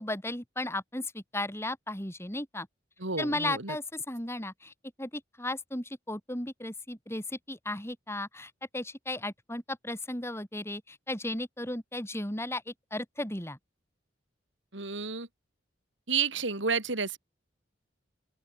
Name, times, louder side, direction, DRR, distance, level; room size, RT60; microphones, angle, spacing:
voice 1, 0.0-2.7 3.2-13.6, left 1 dB, 15° left, 7.9 m, -35 dB
voice 2, 3.0-3.8 14.7-15.3 16.1-17.2, right 5 dB, 75° right, 3.2 m, -31 dB
open air
head